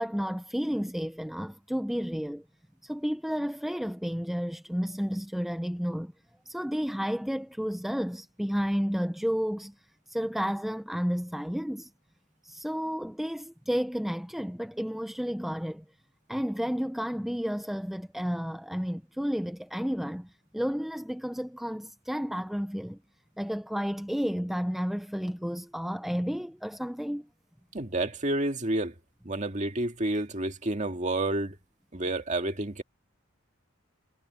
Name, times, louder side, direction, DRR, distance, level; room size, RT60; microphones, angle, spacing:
voice 1, 0.0-2.4 2.8-6.1 6.5-9.7 10.1-11.9 12.4-15.8 16.3-23.0 23.4-27.3, equal, ahead, 0.4 m, -31 dB
voice 2, 27.7-28.9 29.2-31.6 31.9-32.8, right 1 dB, 35° right, 2.0 m, -29 dB
head